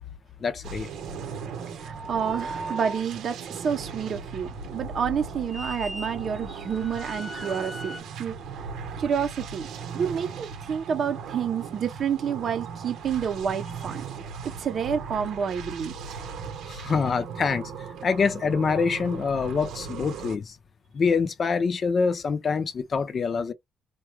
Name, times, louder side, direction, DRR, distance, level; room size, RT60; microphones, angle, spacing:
voice 1, 0.4-0.9 16.7-17.7 18.0-20.6 20.9-23.5, left 5 dB, 40° left, 0.5 m, -25 dB
sound 1, 0.6-20.4, right 5 dB, 85° right, 1.0 m, -38 dB
voice 2, 1.7-8.4 9.0-9.7 9.9-14.0 14.4-16.0, right 7 dB, 50° right, 0.6 m, -29 dB
sound 2, 1.8-3.1 5.5-8.0, right 1 dB, 10° right, 0.7 m, -38 dB
4.4 x 2.3 x 3.1 m
cardioid pair, 120°, 0 cm